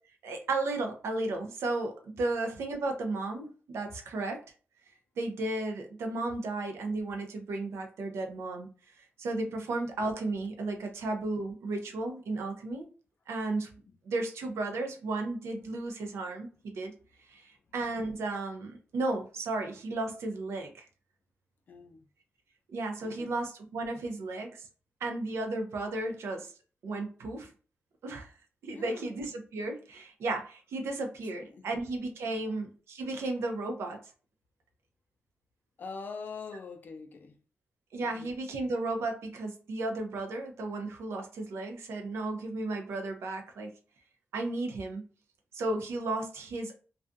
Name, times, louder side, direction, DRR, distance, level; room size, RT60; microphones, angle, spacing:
voice 1, 0.2-4.4 5.2-8.7 9.0-12.9 13.3-13.8 14.0-16.9 17.3-20.9 22.7-24.7 25.0-26.5 26.8-27.5 28.0-28.3 28.6-34.0 37.9-43.7 44.3-45.0 45.5-46.7, right 2 dB, 85° right, 0.6 m, -34 dB
voice 2, 21.7-22.0 23.0-23.3 28.7-29.1 31.3-31.7 32.2-32.7 35.8-37.4 38.0-38.3, left 4 dB, 45° left, 0.4 m, -44 dB
2.4 x 2.3 x 2.5 m
wide cardioid pair, 170°, 4 cm